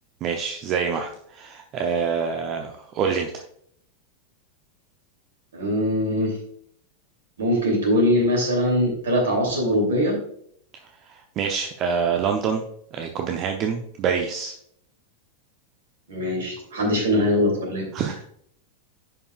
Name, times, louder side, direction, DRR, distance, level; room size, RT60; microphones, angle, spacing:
voice 1, 0.2-3.4 11.1-12.7 12.9-14.5 17.9-18.2, right 6 dB, 35° right, 4 dB, 0.7 m, -26 dB
voice 2, 5.5-6.4 7.4-10.1 16.1-17.8, left 1 dB, 65° right, 1 dB, 2.7 m, -22 dB
10.5 x 5.5 x 2.4 m, 0.65 s
figure-of-eight pair, 90°, 0 cm